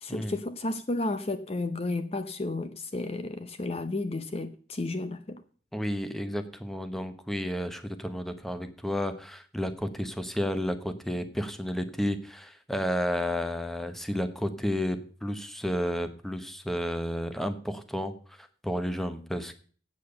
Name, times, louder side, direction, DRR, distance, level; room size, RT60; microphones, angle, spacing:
voice 1, 0.0-5.4, left 2 dB, 35° left, 0.6 m, -32 dB
voice 2, 5.7-19.5, equal, ahead, 0.9 m, -32 dB
8.5 x 7.5 x 6.8 m
head